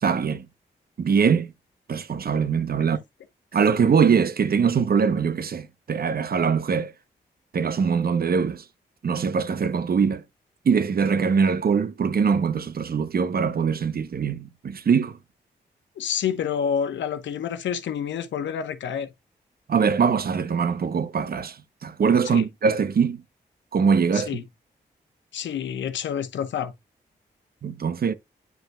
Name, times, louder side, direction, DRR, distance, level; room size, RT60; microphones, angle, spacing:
voice 1, 0.0-0.5 1.0-1.5 1.9-3.0 3.5-6.9 7.5-8.6 9.0-10.2 10.6-15.2 19.7-23.2 23.7-24.3 27.6-28.1, right 6 dB, 55° right, 0.8 m, -22 dB
voice 2, 16.0-19.1 22.3-22.4 24.1-24.4 25.3-26.7, left 8 dB, 85° left, 0.9 m, -28 dB
9.1 x 5.3 x 2.2 m
supercardioid pair, 45°, 19 cm